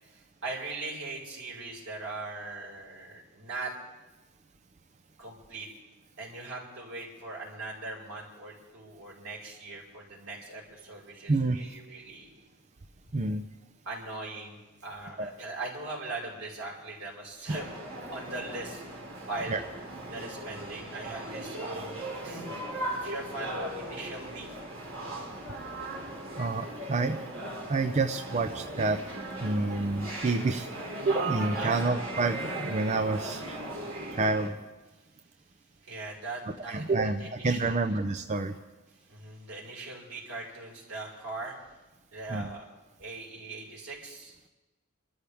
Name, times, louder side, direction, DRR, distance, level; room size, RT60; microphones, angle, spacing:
voice 1, 0.0-3.7 5.2-5.7 6.2-12.5 13.8-17.7 18.1-18.8 19.3-19.6 20.1-22.5 23.0-24.5 31.6-31.8 33.9-34.2 35.8-37.9 39.1-41.6 42.1-42.6 43.0-44.3, right 2 dB, 85° right, -4 dB, 5.1 m, -40 dB
voice 2, 13.1-13.4 15.2-15.3 19.5-19.6 26.3-27.2 27.7-29.0 29.4-30.7 31.1-33.6 34.2-34.6 36.7-38.6 42.3-42.5, right 3 dB, 35° right, 6 dB, 0.5 m, -28 dB
sound 1, 17.5-34.5, right 1 dB, 65° right, 3.0 m, -38 dB
27.5 x 13.0 x 3.5 m, 1.1 s
head